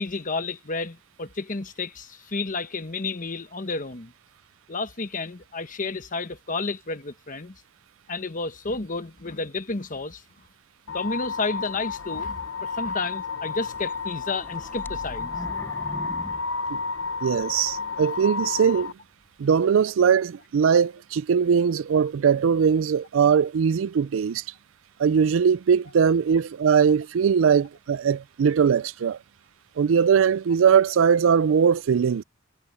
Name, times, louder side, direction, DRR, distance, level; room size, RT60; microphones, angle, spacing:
voice 1, 0.0-4.1 4.7-7.5 8.1-10.2 10.9-15.3, left 3 dB, 40° left, 1.2 m, -31 dB
sound 1, 10.9-18.9, left 4 dB, 80° left, 0.7 m, -32 dB
sound 2, 13.7-17.4 17.9-18.0 18.6-18.7, equal, 10° left, 4.7 m, -41 dB
voice 2, 17.2-18.9 19.4-24.4 25.0-29.2 29.8-32.2, right 7 dB, 75° right, 0.4 m, -21 dB
head